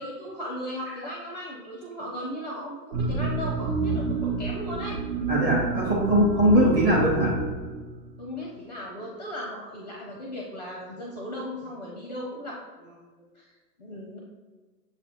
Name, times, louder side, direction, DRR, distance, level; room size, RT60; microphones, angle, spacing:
voice 1, 0.0-5.0 8.2-13.0 13.3-13.5 13.8-14.2, equal, 30° left, -2 dB, 0.5 m, -37 dB
sound 1, 2.9-8.3, right 4 dB, 75° right, 0.9 m, -29 dB
voice 2, 5.3-7.3, equal, 15° right, -5 dB, 0.8 m, -21 dB
6.4 x 2.4 x 2.9 m, 1.3 s
figure-of-eight pair, 125°, 49 cm